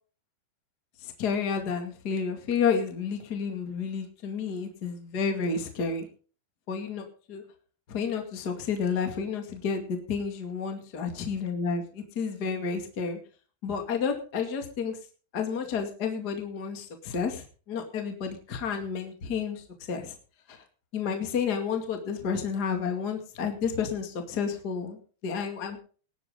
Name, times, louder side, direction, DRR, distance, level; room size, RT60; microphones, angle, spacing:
voice 1, 1.0-6.1 6.7-7.4 7.9-13.2 13.6-15.0 15.3-20.1 20.5-20.6 20.9-25.8, left 6 dB, 40° left, 4 dB, 1.4 m, -31 dB
19.5 x 9.4 x 3.8 m, 0.38 s
omnidirectional pair, 5.6 m